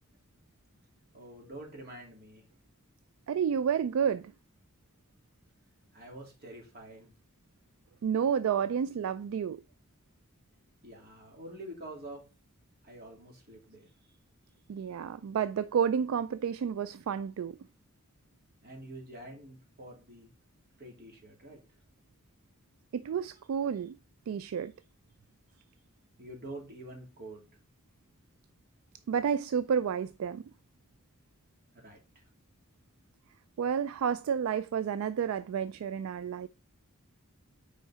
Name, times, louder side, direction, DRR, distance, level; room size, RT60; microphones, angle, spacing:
voice 1, 1.1-2.4 5.9-7.1 10.8-12.2 12.8-13.9 18.6-20.3 20.8-21.6 26.2-27.5 31.7-32.2, right 1 dB, 50° right, 2.7 m, -47 dB
voice 2, 3.3-4.3 8.0-9.6 14.7-17.6 22.9-24.0 24.3-24.7 29.1-30.4 33.6-36.5, right 7 dB, 70° right, 0.3 m, -30 dB
5.5 x 4.9 x 5.5 m
head